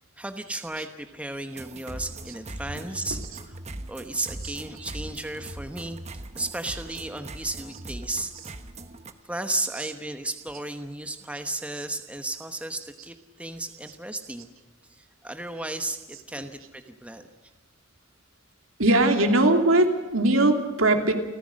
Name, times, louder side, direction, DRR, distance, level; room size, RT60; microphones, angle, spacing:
voice 1, 0.2-3.6 3.9-6.0 6.3-8.3 9.2-14.5 14.9-17.3, right 2 dB, 5° right, 7 dB, 1.0 m, -34 dB
sound 1, 1.5-9.1, right 2 dB, 30° right, 1.2 m, -40 dB
voice 2, 18.8-21.1, right 2 dB, 75° right, 5 dB, 2.8 m, -20 dB
30.0 x 15.0 x 6.4 m, 1.3 s
head